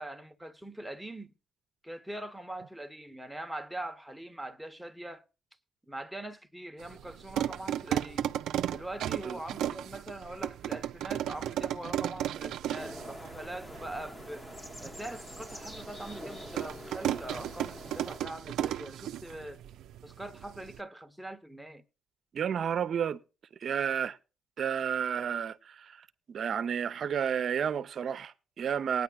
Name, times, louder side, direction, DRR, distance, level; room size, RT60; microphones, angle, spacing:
voice 1, 0.0-1.3 1.8-5.2 5.9-8.3 8.7-14.4 14.8-19.6 20.0-21.8, right 1 dB, ahead, 1.1 m, -42 dB
sound 1, 6.8-20.8, right 11 dB, 80° right, 0.5 m, -36 dB
sound 2, 12.7-18.2, left 1 dB, 20° left, 1.1 m, -45 dB
voice 2, 22.3-23.2 23.6-24.2 24.6-29.0, right 8 dB, 55° right, 0.8 m, -31 dB
19.0 x 9.5 x 2.4 m
cardioid pair, 90°, 0 cm